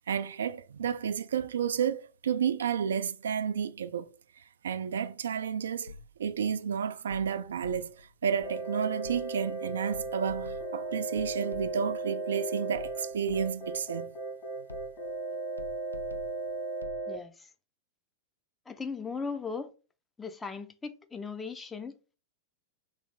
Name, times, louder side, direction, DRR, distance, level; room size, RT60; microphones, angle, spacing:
voice 1, 0.0-4.1 4.6-5.9 6.2-14.1, right 7 dB, 65° right, 0.3 m, -31 dB
sound 1, 5.9-6.4 7.1-8.1 9.0-9.6 9.9-12.0 12.7-13.8 14.7-15.2 15.6-17.1, left 2 dB, 85° left, 0.4 m, -48 dB
sound 2, 8.4-17.2, right 3 dB, 45° left, 1.5 m, -36 dB
voice 2, 17.1-17.5 18.7-19.7 20.2-22.2, left 5 dB, 15° left, 0.5 m, -38 dB
3.2 x 3.1 x 3.8 m
figure-of-eight pair, 95°, 0 cm